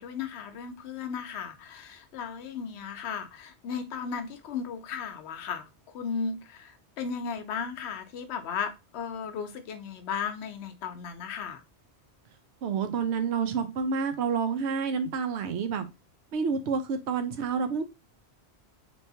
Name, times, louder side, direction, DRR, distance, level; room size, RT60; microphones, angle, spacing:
voice 1, 0.0-5.6 5.9-11.6, left 6 dB, 80° left, 0.9 m, -35 dB
voice 2, 12.6-15.9 16.3-17.8, right 5 dB, 80° right, 0.9 m, -29 dB
3.2 x 3.0 x 2.7 m
omnidirectional pair, 1.1 m